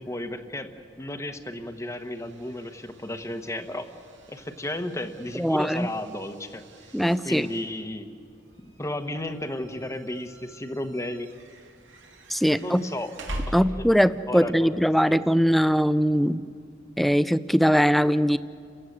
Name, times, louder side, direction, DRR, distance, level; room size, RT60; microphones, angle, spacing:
voice 1, 0.0-3.9 4.3-6.6 7.2-8.1 8.6-11.3 12.5-13.1 13.5-13.8 14.3-14.8 15.0-15.2, left 1 dB, 15° left, 8 dB, 1.2 m, -33 dB
sound 1, 1.4-14.2, equal, 75° right, 2.5 m, -43 dB
voice 2, 5.3-5.9 6.9-7.5 12.3-12.9 13.5-16.4 17.0-18.4, equal, ahead, 14 dB, 0.5 m, -21 dB
30.0 x 16.0 x 8.0 m, 2.3 s
head